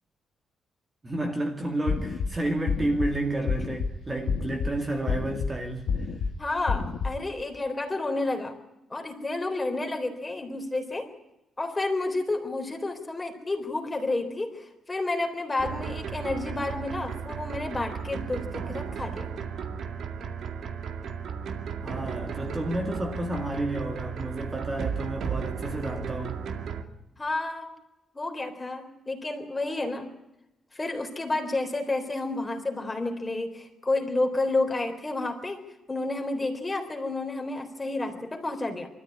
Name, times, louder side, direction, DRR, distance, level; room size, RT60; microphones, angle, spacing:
voice 1, 1.0-6.1 21.8-26.5, right 1 dB, 20° right, 2.2 m, -31 dB
sound 1, 1.9-2.3 2.7-3.1 3.5-3.9 4.3-4.7 5.1-5.5 5.9-6.3 6.7-7.1, left 5 dB, 70° left, 2.0 m, -28 dB
voice 2, 6.4-8.5 8.9-11.1 11.6-19.3 27.2-27.7 28.1-30.1 30.7-35.6 35.9-38.9, left 2 dB, 15° left, 3.7 m, -30 dB
sound 2, 15.6-26.8, right 6 dB, 60° right, 2.2 m, -35 dB
24.5 x 14.0 x 9.8 m
cardioid pair, 145°, 0 cm